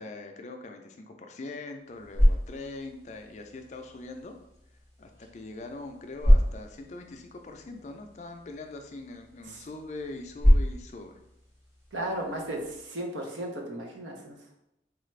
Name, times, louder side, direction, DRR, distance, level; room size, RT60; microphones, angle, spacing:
voice 1, 0.0-4.3 5.0-11.2, left 2 dB, 40° left, 5 dB, 0.3 m, -42 dB
sound 1, 1.8-12.9, equal, 15° right, 0.9 m, -28 dB
voice 2, 11.9-14.4, right 1 dB, 80° right, 0 dB, 0.8 m, -35 dB
4.2 x 2.4 x 3.2 m, 0.83 s
head